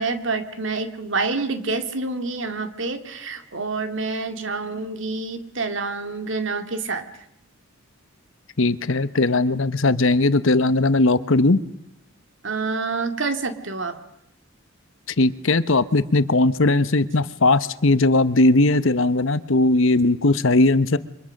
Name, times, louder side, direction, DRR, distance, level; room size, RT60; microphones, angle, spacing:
voice 1, 0.0-7.1 12.4-14.0, right 3 dB, 60° right, 8 dB, 2.3 m, -27 dB
voice 2, 8.6-11.6 15.2-21.0, left 2 dB, 65° left, 15 dB, 1.0 m, -18 dB
28.5 x 24.5 x 6.6 m, 0.75 s
head